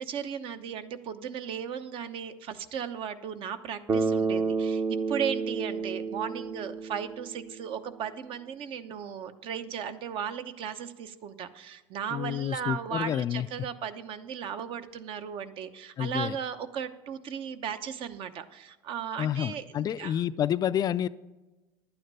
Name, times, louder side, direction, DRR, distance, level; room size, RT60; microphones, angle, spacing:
voice 1, 0.0-20.2, right 8 dB, 55° right, 10 dB, 0.9 m, -36 dB
Bass guitar, 3.9-7.9, right 4 dB, 25° right, 0.7 m, -30 dB
voice 2, 12.1-13.5 16.0-16.4 19.2-21.1, left 10 dB, 35° left, 15 dB, 0.3 m, -29 dB
11.0 x 9.2 x 5.4 m, 1.1 s
supercardioid pair, 105°, 11 cm